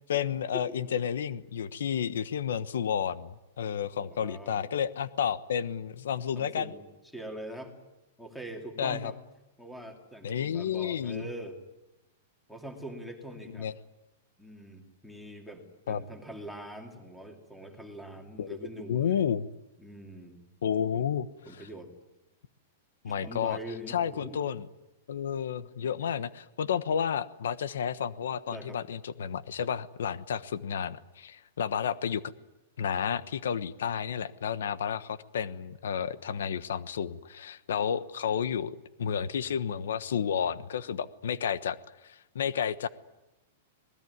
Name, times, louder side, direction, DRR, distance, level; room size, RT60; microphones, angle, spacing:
voice 1, 0.1-6.7 8.8-9.1 10.2-11.2 13.5-13.7 15.9-16.0 18.4-18.6 18.9-19.5 20.6-21.3 21.5-21.7 23.0-23.6 23.9-24.6 25.1-32.2 32.8-41.8 42.0-42.9, left 8 dB, 90° left, 15 dB, 1.1 m, -31 dB
voice 2, 4.0-4.7 6.4-6.8 7.1-7.7 8.2-9.2 9.6-11.6 12.5-13.7 14.4-19.3 19.8-20.4 20.9-21.1 21.5-21.9 23.1-24.4 28.5-28.8, right 1 dB, ahead, 4 dB, 2.6 m, -43 dB
26.5 x 19.5 x 9.6 m, 0.96 s
supercardioid pair, 175°, 0 cm